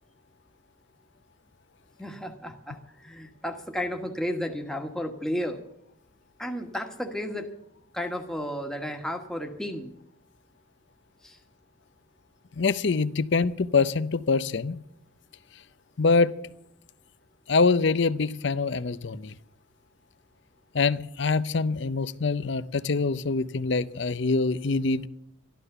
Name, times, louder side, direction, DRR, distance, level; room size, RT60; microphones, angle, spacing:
voice 1, 2.0-5.6 6.4-7.5 7.9-9.9 11.2-11.4, equal, 5° left, 3 dB, 1.4 m, -33 dB
voice 2, 12.5-14.8 16.0-16.3 17.5-19.3 20.7-25.1, left 4 dB, 60° left, 16 dB, 0.6 m, -24 dB
13.0 x 12.0 x 6.8 m, 0.78 s
head